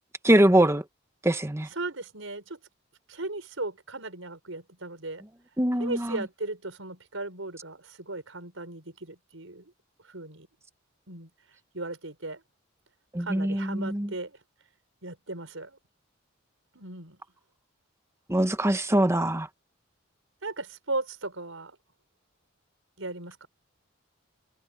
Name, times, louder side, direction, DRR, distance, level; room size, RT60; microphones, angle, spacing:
voice 1, 0.2-0.8 1.2-1.7 5.6-6.2 13.1-14.1 18.3-19.5, right 1 dB, 15° right, 1.1 m, -23 dB
voice 2, 1.7-2.6 3.1-5.2 5.8-9.7 10.1-10.5 11.1-11.3 11.7-12.4 13.2-14.4 15.0-15.8 16.7-17.2 20.4-21.8 23.0-23.5, right 2 dB, 80° right, 6.0 m, -37 dB
head